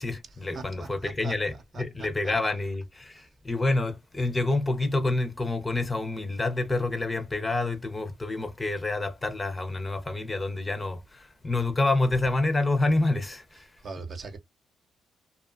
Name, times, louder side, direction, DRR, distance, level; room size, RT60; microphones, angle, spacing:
voice 1, 0.0-1.5 1.8-13.7, left 2 dB, 20° left, 0.6 m, -28 dB
voice 2, 0.5-2.1 3.1-3.3 13.8-14.4, right 4 dB, 50° right, 0.8 m, -41 dB
2.6 x 2.3 x 2.4 m
cardioid pair, 90°, 0 cm